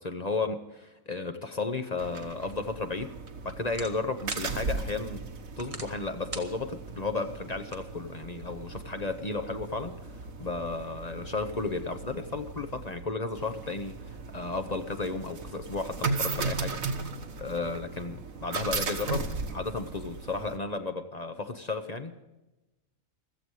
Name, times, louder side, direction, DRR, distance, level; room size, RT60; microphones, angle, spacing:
voice 1, 0.0-3.2 3.4-5.3 5.6-16.8 17.4-22.2, left 3 dB, 35° left, 8 dB, 0.8 m, -34 dB
sound 1, 2.0-20.6, right 4 dB, 80° right, 1.7 m, -37 dB
sound 2, 2.5-8.6, right 3 dB, 25° right, 1.2 m, -47 dB
15.5 x 14.0 x 4.8 m, 1.0 s
omnidirectional pair, 1.4 m